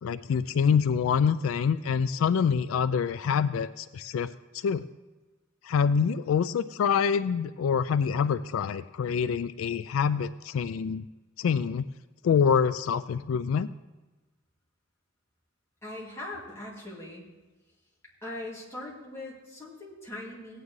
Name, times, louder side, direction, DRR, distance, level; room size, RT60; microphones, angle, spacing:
voice 1, 0.0-4.8 5.6-11.0 11.4-11.9 12.2-13.7, left 6 dB, 80° left, 14 dB, 0.3 m, -26 dB
voice 2, 15.8-17.2 18.2-20.6, left 1 dB, 15° left, -5 dB, 2.6 m, -40 dB
17.0 x 9.3 x 3.2 m, 1.2 s
head